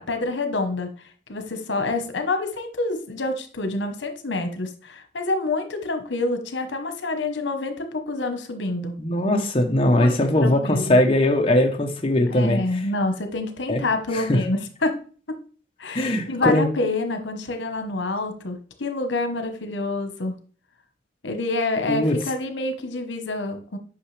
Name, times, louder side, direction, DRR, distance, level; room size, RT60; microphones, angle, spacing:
voice 1, 0.1-0.9 1.3-8.9 9.8-11.0 12.3-15.0 15.8-20.4 21.2-23.8, left 2 dB, 85° left, 7 dB, 1.0 m, -27 dB
voice 2, 9.0-12.6 13.7-13.8 14.1-14.4 15.9-16.7 21.9-22.2, left 1 dB, 30° left, 2 dB, 0.8 m, -20 dB
8.6 x 5.7 x 3.2 m, 0.41 s
head